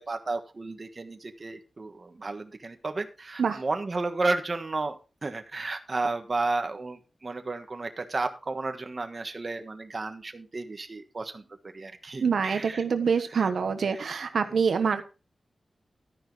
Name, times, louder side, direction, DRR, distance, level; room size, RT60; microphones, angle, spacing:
voice 1, 0.1-5.0 5.2-12.8 13.4-13.5 14.7-14.9, right 3 dB, 35° right, 6 dB, 1.4 m, -32 dB
voice 2, 12.2-15.0, right 6 dB, 80° right, 8 dB, 1.2 m, -25 dB
12.5 x 10.0 x 3.3 m, 0.32 s
wide cardioid pair, 155°, 0 cm